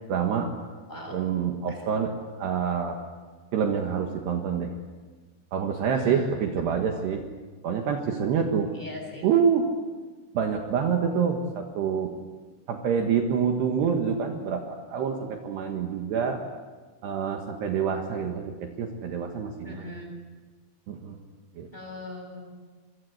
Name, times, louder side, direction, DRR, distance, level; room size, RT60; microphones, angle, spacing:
voice 1, 0.1-0.5 1.1-2.1 2.4-3.0 3.5-4.7 5.5-7.2 7.6-8.7 9.2-9.7 10.3-12.1 12.7-16.4 17.0-20.0 20.9-21.2 21.6-21.7, right 7 dB, 65° right, 3 dB, 3.5 m, -27 dB
voice 2, 5.9-6.4 8.7-9.3 19.6-20.1 21.7-22.5, left 1 dB, 10° left, 0 dB, 7.4 m, -40 dB
27.5 x 24.5 x 8.1 m, 1.4 s
omnidirectional pair, 5.7 m